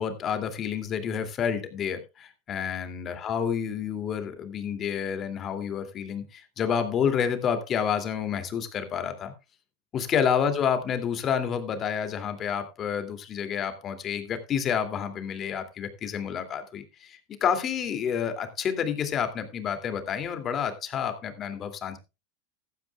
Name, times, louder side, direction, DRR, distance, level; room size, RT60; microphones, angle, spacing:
voice 1, 0.0-9.3 9.9-22.0, left 7 dB, 35° left, 8 dB, 2.5 m, -29 dB
15.0 x 12.0 x 2.3 m, 0.27 s
hypercardioid pair, 105°, 0 cm